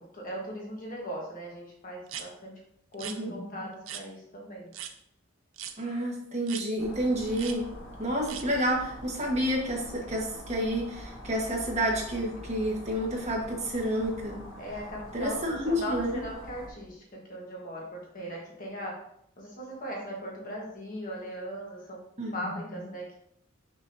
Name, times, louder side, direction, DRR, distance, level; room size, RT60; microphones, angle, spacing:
voice 1, 0.0-2.5 2.9-4.7 14.6-19.0 19.4-22.0 22.3-23.1, equal, 45° left, -2 dB, 1.3 m, -39 dB
sound 1, 2.1-2.3 2.9-3.2 3.9-4.0 4.7-4.9 5.6-5.8 6.5-6.7 7.3-7.6 8.3-8.5, right 9 dB, 90° right, 0.6 m, -39 dB
voice 2, 5.8-7.7 8.0-14.4 15.1-16.2 22.2-22.3, equal, 35° right, -1 dB, 1.4 m, -29 dB
sound 2, 6.8-16.7, equal, 75° left, 1.6 m, -45 dB
6.3 x 6.2 x 2.7 m, 0.73 s
head